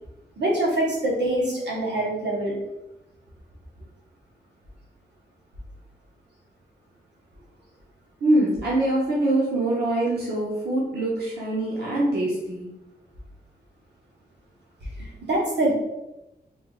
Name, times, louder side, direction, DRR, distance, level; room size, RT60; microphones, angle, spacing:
voice 1, 0.4-2.6 15.0-15.7, right 1 dB, 85° right, -4 dB, 1.2 m, -24 dB
voice 2, 8.2-12.7, right 1 dB, 70° right, -6 dB, 0.9 m, -24 dB
3.5 x 2.6 x 3.7 m, 0.93 s
wide cardioid pair, 160°, 17 cm